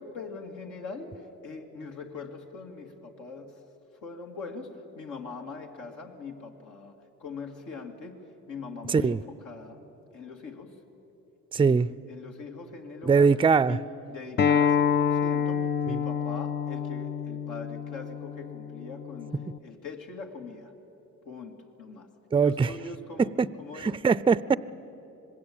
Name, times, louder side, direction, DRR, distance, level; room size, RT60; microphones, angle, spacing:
voice 1, 0.0-3.6 4.0-9.8 10.1-10.8 11.5-11.8 12.1-13.3 13.7-20.8 21.2-24.0, left 4 dB, 85° left, 2 dB, 2.7 m, -42 dB
voice 2, 8.9-9.2 11.5-11.9 13.0-13.8 15.9-16.0 22.3-22.7 23.2-23.5 23.8-24.6, right 5 dB, 15° right, 18 dB, 0.5 m, -22 dB
Acoustic guitar, 14.4-19.6, left 7 dB, 35° left, 0.6 m, -27 dB
26.0 x 20.5 x 8.8 m, 2.9 s
cardioid pair, 90°, 30 cm